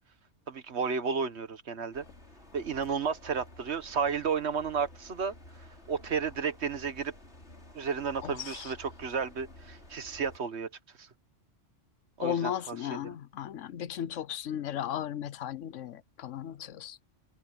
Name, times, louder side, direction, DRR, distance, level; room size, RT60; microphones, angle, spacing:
voice 1, 0.5-2.0 2.5-5.3 5.9-7.1 7.7-10.7 11.0-11.1 12.2-13.0, right 6 dB, 60° right, 1.5 m, -32 dB
sound 1, 1.9-10.4, left 1 dB, 60° left, 5.4 m, -52 dB
voice 2, 8.2-8.7 12.2-17.0, left 9 dB, 80° left, 1.1 m, -35 dB
omnidirectional pair, 1.3 m